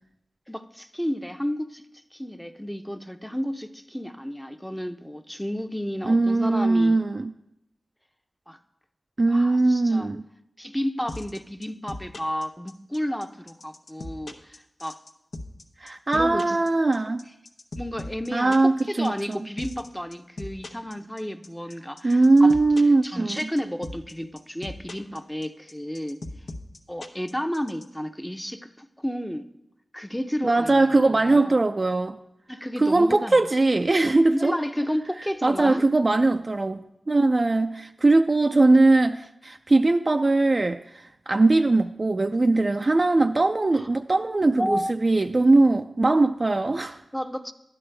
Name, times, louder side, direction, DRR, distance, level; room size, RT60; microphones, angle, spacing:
voice 1, 0.5-1.8 2.1-7.0 8.5-8.6 9.3-10.1 10.6-15.0 16.1-16.6 17.1-17.2 17.8-22.5 23.0-26.2 26.9-29.5 29.9-31.6 32.5-33.4 34.3-35.9 43.7-43.9 44.6-44.9 47.1-47.5, equal, 5° left, 8 dB, 0.6 m, -32 dB
voice 2, 6.0-7.3 9.2-10.2 15.8-17.2 18.3-19.4 22.0-23.4 30.4-32.2 32.8-34.5 35.4-36.8 37.1-47.0, right 2 dB, 45° right, 5 dB, 0.3 m, -20 dB
sound 1, 11.1-27.8, left 2 dB, 75° left, 0.8 m, -38 dB
12.0 x 9.5 x 3.4 m, 0.86 s
cardioid pair, 45°, 0 cm